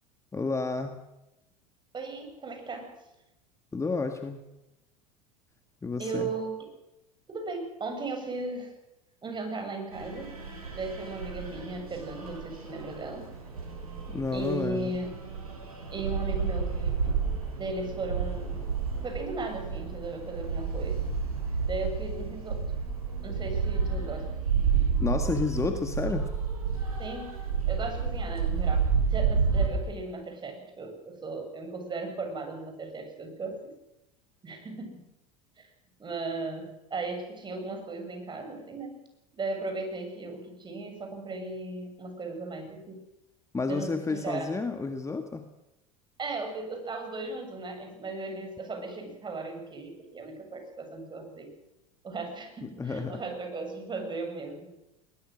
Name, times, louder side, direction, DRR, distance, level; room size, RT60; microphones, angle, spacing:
voice 1, 0.3-1.0 3.7-4.4 5.8-6.3 14.1-15.0 25.0-26.3 43.5-45.5 52.8-53.2, left 4 dB, 15° left, 7 dB, 1.9 m, -31 dB
voice 2, 1.9-3.0 6.0-6.7 7.3-8.8 9.2-10.4 10.7-13.3 14.3-15.1 15.9-17.0 17.6-18.7 19.0-21.1 21.6-22.7 23.2-24.3 27.0-33.7 34.4-35.0 35.6-35.7 36.0-39.0 39.4-43.0 43.7-44.5 46.2-51.5 52.0-54.7, right 3 dB, 25° right, 5 dB, 7.1 m, -36 dB
sound 1, 9.9-29.7, right 6 dB, 85° right, 7.1 m, -30 dB
21.5 x 20.5 x 6.5 m, 0.92 s
hypercardioid pair, 80°, 18 cm